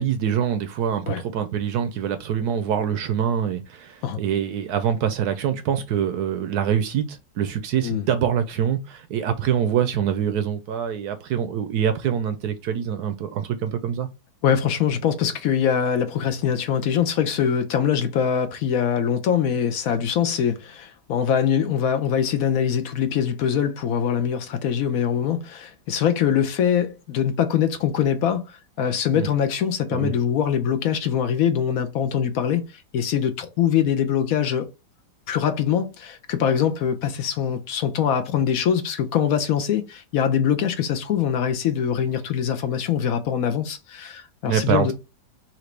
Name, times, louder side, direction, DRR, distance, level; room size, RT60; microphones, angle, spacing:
voice 1, 0.0-14.1 29.1-29.3 29.9-30.1 44.4-44.9, right 8 dB, 70° right, 1.0 m, -25 dB
voice 2, 14.4-34.7 35.3-44.9, left 8 dB, 65° left, 0.9 m, -23 dB
5.8 x 2.6 x 3.2 m
omnidirectional pair, 2.0 m